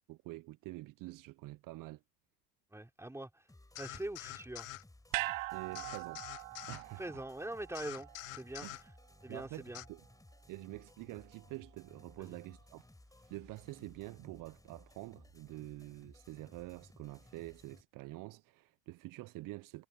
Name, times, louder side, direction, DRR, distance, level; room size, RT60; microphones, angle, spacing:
voice 1, 0.1-2.0 5.5-6.2 6.7-7.0 8.6-8.8 9.3-10.0 10.5-12.8 13.3-19.9, right 19 dB, 55° right, 1.0 m, -47 dB
voice 2, 2.7-3.5 3.8-4.7 7.0-8.7 9.2-9.8 12.2-12.4, right 1 dB, 5° right, 4.9 m, -43 dB
sound 1, 3.5-17.8, left 2 dB, 10° left, 5.5 m, -60 dB
sound 2, 3.8-4.8 5.7-6.8 7.7-8.8 9.7-9.9, left 19 dB, 75° left, 1.3 m, -46 dB
sound 3, 5.1-9.5 9.8-9.9, right 20 dB, 75° right, 0.7 m, -42 dB
hypercardioid pair, 70°, 40 cm